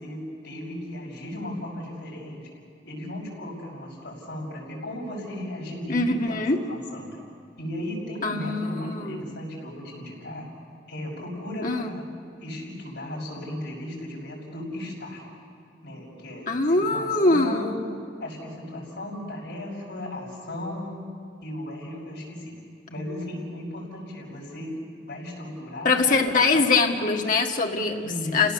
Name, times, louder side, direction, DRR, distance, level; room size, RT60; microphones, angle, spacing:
voice 1, 0.0-2.5 2.8-7.2 7.6-10.4 10.9-12.0 12.4-15.2 15.8-17.9 18.2-21.0 21.4-22.5 22.9-24.7 25.1-26.6 28.0-28.5, left 1 dB, 75° left, -3 dB, 6.3 m, -36 dB
voice 2, 5.9-6.6 8.2-9.3 11.6-11.9 16.5-17.7 25.8-28.5, left 3 dB, 50° left, 2 dB, 1.8 m, -23 dB
29.5 x 17.0 x 6.9 m, 2.3 s
head